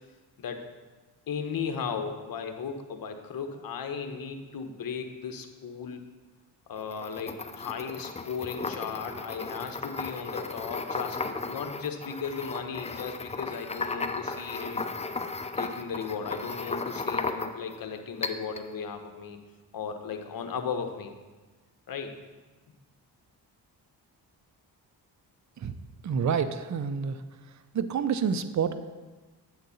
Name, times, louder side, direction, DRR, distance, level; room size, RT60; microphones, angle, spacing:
voice 1, 1.3-6.1 6.7-14.8 15.6-19.4 19.7-21.1 21.9-22.2, left 6 dB, 55° left, 6 dB, 1.0 m, -36 dB
sound 1, 6.8-17.8 18.2-18.7, left 3 dB, 15° left, 0.5 m, -35 dB
voice 2, 26.0-27.2 27.7-28.7, right 6 dB, 45° right, 10 dB, 0.6 m, -28 dB
8.9 x 3.8 x 7.0 m, 1.3 s
cardioid pair, 75°, 42 cm